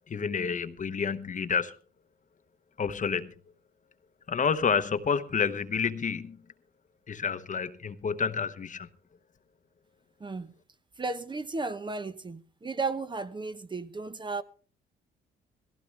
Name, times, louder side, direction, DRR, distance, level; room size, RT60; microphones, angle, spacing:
voice 1, 0.1-1.7 2.8-3.3 4.3-6.4 7.1-8.9, left 6 dB, 40° left, 1.0 m, -29 dB
voice 2, 10.2-10.5 11.0-14.4, right 3 dB, 25° right, 0.9 m, -34 dB
17.5 x 15.5 x 3.3 m
cardioid pair, 90°, 20 cm